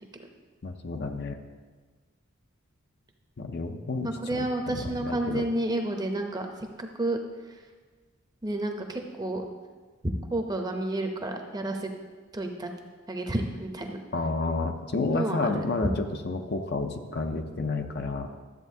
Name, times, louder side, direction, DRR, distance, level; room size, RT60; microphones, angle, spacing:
voice 1, 0.6-1.4 3.4-5.4 14.1-15.9 16.2-18.3, left 3 dB, 50° left, 6 dB, 0.6 m, -30 dB
voice 2, 4.0-6.5 6.8-7.2 8.4-9.4 10.3-11.9 12.3-12.7 13.1-14.0 15.1-15.6, right 1 dB, 20° right, 3 dB, 0.7 m, -30 dB
12.5 x 7.9 x 2.7 m, 1.4 s
head